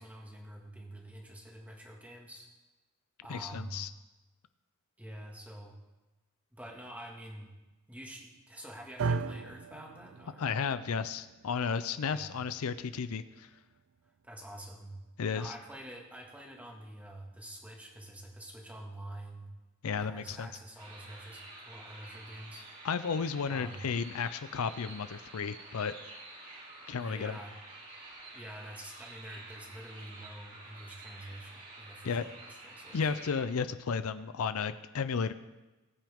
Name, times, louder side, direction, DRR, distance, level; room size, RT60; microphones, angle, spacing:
voice 1, 0.0-2.5 3.2-3.9 5.0-5.7 6.5-7.5 7.9-10.5 12.1-12.4 14.2-15.0 15.3-19.5 20.0-22.7 23.5-23.9 27.0-27.5 28.3-33.1, right 1 dB, 5° right, 0 dB, 1.7 m, -47 dB
voice 2, 3.3-3.9 10.4-13.5 15.2-15.5 19.8-20.5 22.8-25.9 26.9-27.4 32.0-32.2 32.9-35.3, left 6 dB, 75° left, 13 dB, 0.5 m, -33 dB
sound 1, 9.0-17.2, right 4 dB, 55° right, 0.4 m, -41 dB
sound 2, 20.8-33.5, right 2 dB, 35° right, 2.8 m, -49 dB
19.5 x 9.0 x 3.6 m, 1.1 s
head